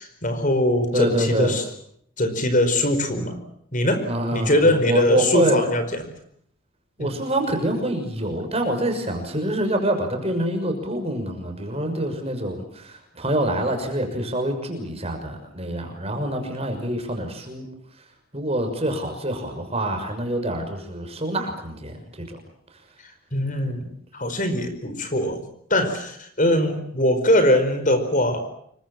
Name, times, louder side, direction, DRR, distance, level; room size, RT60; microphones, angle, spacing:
voice 1, 0.0-1.6 2.2-3.4 3.7-4.0 4.3-6.0 7.0-7.1 23.3-23.9 24.1-25.4 25.7-28.4, left 1 dB, 40° left, 9 dB, 4.8 m, -21 dB
voice 2, 0.9-1.6 4.0-5.6 7.0-17.7 18.3-22.4, right 1 dB, 30° right, 5 dB, 6.2 m, -26 dB
28.0 x 23.5 x 7.4 m, 0.68 s
head